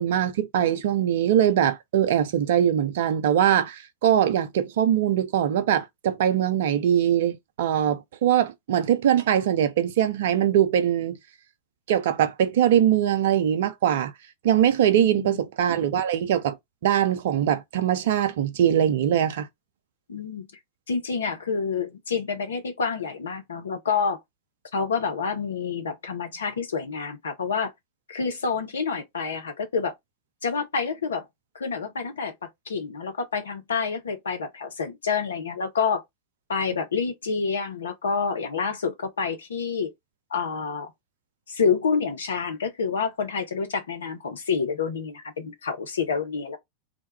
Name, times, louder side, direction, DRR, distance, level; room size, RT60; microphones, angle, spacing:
voice 1, 0.0-11.2 11.9-14.1 14.4-16.6 16.8-19.5, right 10 dB, 55° right, 0.5 m, -22 dB
voice 2, 14.9-15.4 20.1-20.5 20.9-24.2 24.7-27.7 28.1-29.9 30.4-31.3 31.5-36.0 36.5-39.9 40.3-40.9 41.5-46.6, left 5 dB, 70° left, 0.7 m, -28 dB
2.2 x 2.1 x 2.9 m
figure-of-eight pair, 90°, 0 cm